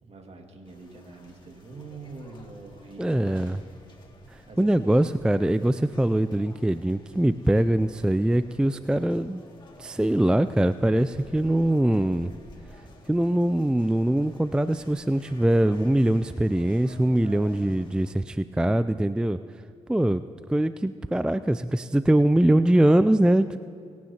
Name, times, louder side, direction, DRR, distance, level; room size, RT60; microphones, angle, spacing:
voice 1, 0.0-3.8 4.5-5.0 17.2-17.8, right 3 dB, 50° right, 2 dB, 2.2 m, -45 dB
sound 1, 0.6-18.1, left 1 dB, 35° left, 2.2 m, -52 dB
voice 2, 3.0-3.6 4.3-9.4 9.8-12.3 13.1-19.4 19.9-20.2 20.5-23.6, right 1 dB, 5° right, 12 dB, 0.4 m, -22 dB
26.5 x 9.3 x 2.9 m, 2.4 s
supercardioid pair, 55°, 14 cm